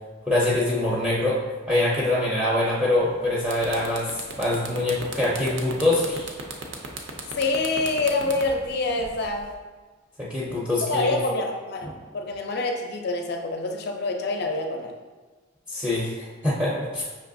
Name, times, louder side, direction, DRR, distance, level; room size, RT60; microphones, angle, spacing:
voice 1, 0.3-6.3 10.2-11.2 15.7-17.0, left 1 dB, 5° right, -7 dB, 0.5 m, -24 dB
sound 1, 3.0-3.1 3.4-9.5, right 3 dB, 65° right, 0.5 m, -36 dB
voice 2, 7.4-9.5 10.9-14.9, left 2 dB, 50° left, 3 dB, 0.4 m, -26 dB
5.5 x 2.9 x 2.6 m, 1.3 s
head